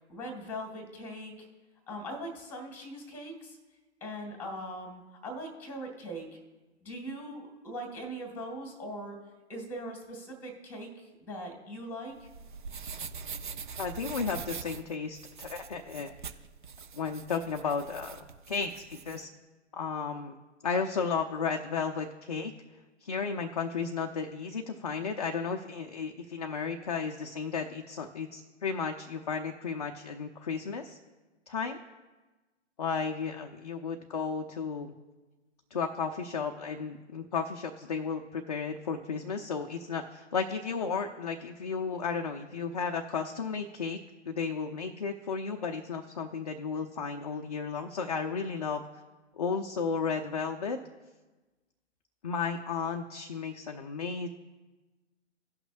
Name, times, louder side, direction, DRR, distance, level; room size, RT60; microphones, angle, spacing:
voice 1, 0.1-1.5 1.9-3.6 4.0-6.3 6.8-9.1 9.5-12.3, equal, 5° left, 2 dB, 1.8 m, -40 dB
sound 1, 12.1-19.2, right 5 dB, 45° right, 0.6 m, -43 dB
voice 2, 13.8-16.1 17.0-19.3 19.7-20.3 20.6-22.5 23.0-31.0 31.5-31.8 32.8-34.9 35.7-48.8 49.4-50.8 52.2-54.3, left 5 dB, 35° left, 3 dB, 0.5 m, -34 dB
17.5 x 5.9 x 2.4 m, 1.2 s
figure-of-eight pair, 130°, 36 cm